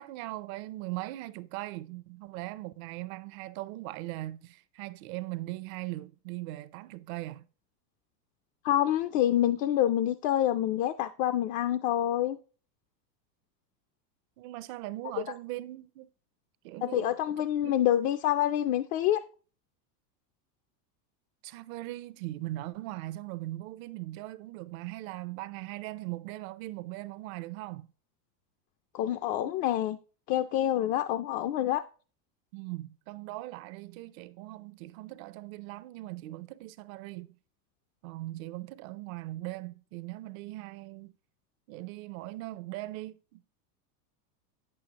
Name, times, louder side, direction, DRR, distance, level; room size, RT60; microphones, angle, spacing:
voice 1, 0.0-7.5 14.4-16.1 16.6-17.3 17.6-18.0 21.4-27.9 32.5-37.3 38.0-41.1 41.7-43.5, right 18 dB, 55° right, 0.6 m, -40 dB
voice 2, 8.6-12.4 16.8-19.2 28.9-30.0 30.3-31.8, left 12 dB, 45° left, 0.4 m, -27 dB
8.4 x 7.7 x 2.9 m
supercardioid pair, 115°, 50 cm